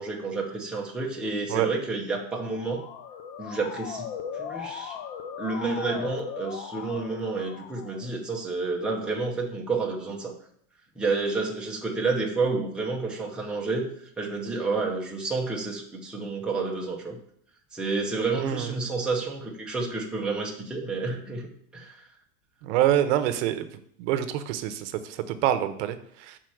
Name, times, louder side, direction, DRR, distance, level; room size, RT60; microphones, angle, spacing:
voice 1, 0.0-2.8 3.4-5.0 5.4-10.3 11.0-13.9 14.2-17.2 17.7-22.0, right 3 dB, ahead, -2 dB, 0.6 m, -30 dB
Motor vehicle (road) / Siren, 2.2-8.1, left 8 dB, 40° left, 0.5 m, -38 dB
voice 2, 18.4-18.8 22.6-23.7 24.0-26.4, right 11 dB, 60° right, 10 dB, 0.8 m, -26 dB
5.8 x 4.3 x 6.3 m, 0.66 s
supercardioid pair, 170°, 40 cm